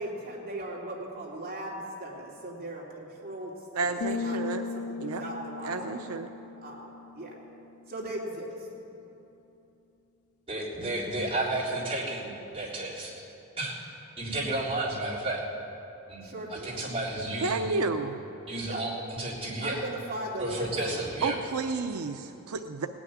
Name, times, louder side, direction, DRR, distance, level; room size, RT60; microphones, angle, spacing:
voice 1, 0.0-4.4 4.7-6.0 6.6-7.3 7.9-8.7 16.2-16.9 18.6-18.8 19.6-21.1, right 1 dB, 45° right, -3 dB, 2.8 m, -38 dB
voice 2, 3.8-4.6 5.0-5.2 5.6-6.3 17.4-18.2 21.2-22.9, right 4 dB, 90° right, 6 dB, 0.6 m, -31 dB
sound 1, 4.0-7.7, left 5 dB, 75° left, 0.3 m, -37 dB
voice 3, 10.5-13.1 13.6-13.8 14.2-15.4 16.1-16.3 16.6-17.7 18.5-19.8 20.4-21.4, right 2 dB, 25° right, -8 dB, 3.7 m, -32 dB
18.5 x 6.2 x 9.4 m, 2.9 s
head